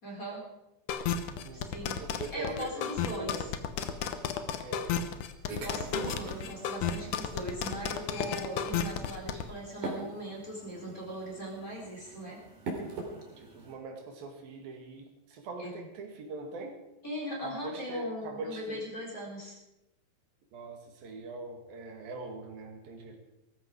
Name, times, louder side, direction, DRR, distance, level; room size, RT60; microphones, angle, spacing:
voice 1, 0.0-0.4 1.5-3.4 5.4-12.4 15.6-15.9 17.0-19.6, equal, 25° left, -3 dB, 4.2 m, -40 dB
sound 1, 0.9-9.4, left 8 dB, 70° left, 2.3 m, -32 dB
voice 2, 1.4-2.9 3.1-3.5 4.6-5.0 5.7-6.2 13.4-16.8 17.4-18.8 20.5-23.2, right 2 dB, 80° right, 2 dB, 4.0 m, -42 dB
sound 2, 5.5-13.7, right 3 dB, 60° right, 4.6 m, -43 dB
18.5 x 14.5 x 4.7 m, 0.92 s
omnidirectional pair, 4.1 m